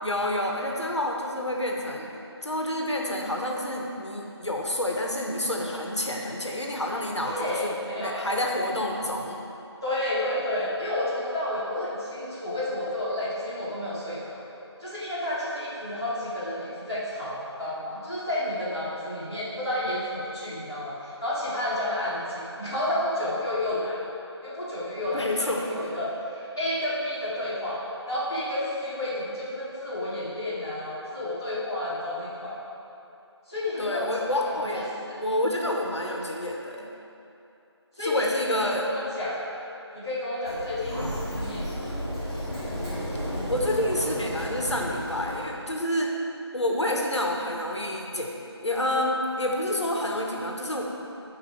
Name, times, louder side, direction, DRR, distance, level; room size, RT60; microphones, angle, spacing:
voice 1, 0.0-2.1 2.4-7.3 7.6-9.4 25.1-25.7 33.8-34.9 35.2-36.9 38.0-38.8 43.5-46.1 46.5-48.3 48.6-50.8, left 1 dB, 75° left, 0 dB, 1.5 m, -28 dB
voice 2, 7.2-8.4 9.8-14.4 14.8-24.0 24.4-32.6 33.5-35.2 36.0-36.1 38.0-39.4 39.9-41.9, left 1 dB, 5° left, -17 dB, 0.8 m, -31 dB
Sliding door, 40.4-45.5, equal, 15° right, 1.2 m, -33 dB
13.0 x 5.0 x 4.8 m, 2.8 s
figure-of-eight pair, 175°, 15 cm